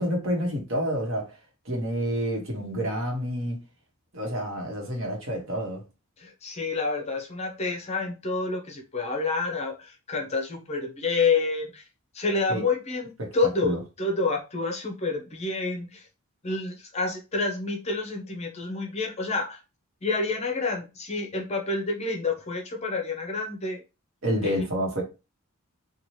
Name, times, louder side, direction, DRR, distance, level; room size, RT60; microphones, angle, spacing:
voice 1, 0.0-1.4 1.6-3.6 4.1-5.8 12.5-12.6 13.2-13.3 13.6-13.8 24.2-25.0, equal, 65° right, 1.1 m, -28 dB
voice 2, 6.2-11.8 12.1-16.1 16.4-19.6 20.0-23.8 24.4-24.6, left 3 dB, 30° left, 0.6 m, -28 dB
2.8 x 2.3 x 3.1 m
head